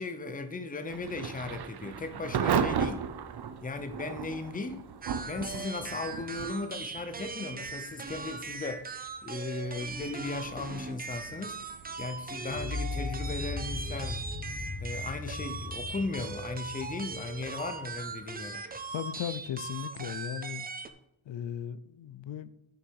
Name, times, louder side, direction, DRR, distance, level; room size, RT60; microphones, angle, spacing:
voice 1, 0.0-3.0 3.6-4.8 5.2-8.9 9.2-11.6 12.0-14.2 14.8-18.6, left 3 dB, 20° left, 0.7 m, -37 dB
Thunder / Rain, 0.9-17.6, right 7 dB, 65° right, 0.7 m, -38 dB
sound 1, 5.0-20.9, right 4 dB, 20° right, 0.5 m, -40 dB
sound 2, 12.5-18.5, left 3 dB, 50° left, 1.5 m, -38 dB
voice 2, 18.9-20.6 21.3-22.5, left 9 dB, 90° left, 0.7 m, -37 dB
9.2 x 6.7 x 4.7 m
wide cardioid pair, 155°, 43 cm